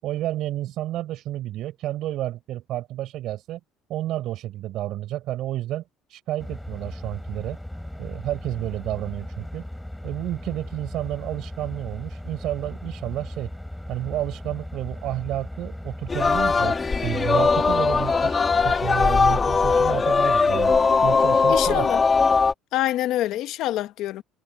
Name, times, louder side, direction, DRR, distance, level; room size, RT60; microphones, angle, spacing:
voice 1, 0.0-3.6 3.9-5.8 6.1-7.6 8.0-9.6 10.0-13.5 13.9-16.8 17.0-21.9, right 14 dB, 55° right, 7.3 m, -30 dB
sound 1, 6.4-20.0, left 1 dB, 5° left, 6.0 m, -37 dB
Singing, 16.1-22.5, left 4 dB, 20° left, 1.7 m, -20 dB
voice 2, 21.5-22.0 22.7-24.2, left 14 dB, 60° left, 1.1 m, -25 dB
cardioid pair, 155°, 0 cm